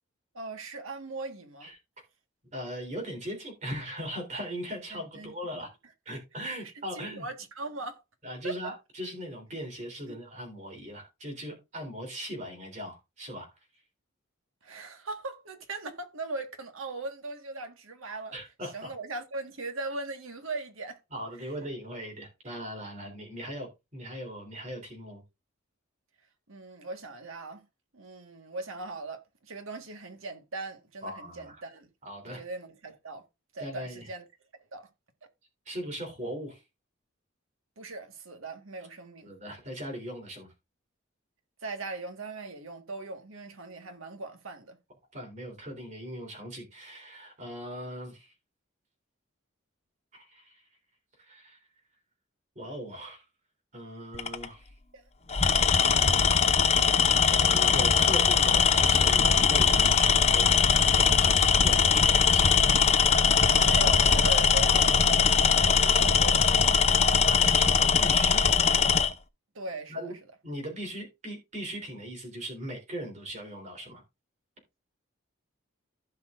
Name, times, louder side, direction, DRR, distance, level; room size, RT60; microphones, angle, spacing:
voice 1, 0.3-1.7 4.9-5.3 6.1-6.2 6.6-8.0 8.4-8.7 10.1-10.2 14.6-18.4 18.7-21.0 21.9-22.0 22.5-22.7 26.5-27.6 27.9-31.9 32.2-33.2 33.5-34.2 34.7-34.9 37.8-39.3 41.6-44.8 54.9-55.0 55.4-56.1 63.6-67.0 69.6-70.2, right 3 dB, 80° right, 1.7 m, -39 dB
voice 2, 2.5-5.7 6.1-7.3 8.2-13.5 18.3-18.9 21.1-25.2 31.0-31.6 32.1-32.4 33.6-34.1 35.7-36.6 39.2-40.5 45.1-48.3 50.1-50.6 51.2-51.6 52.6-53.2 53.7-54.7 56.8-62.7 65.8-66.0 67.3-68.6 69.9-70.1 70.4-74.0, equal, 35° right, 3.5 m, -39 dB
Tools, 54.1-54.4 55.3-69.1, left 6 dB, 30° left, 0.6 m, -21 dB
15.5 x 5.8 x 2.5 m
head